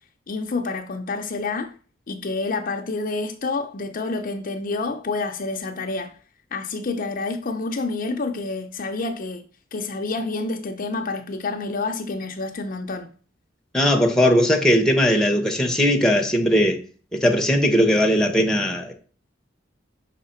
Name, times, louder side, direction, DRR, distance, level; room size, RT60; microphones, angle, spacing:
voice 1, 0.3-1.7 2.1-6.2 6.5-9.4 9.7-13.1, left 3 dB, 45° left, 0.6 m, -28 dB
voice 2, 13.7-16.8 17.1-18.9, equal, 5° left, 0.9 m, -19 dB
5.7 x 3.5 x 5.7 m
head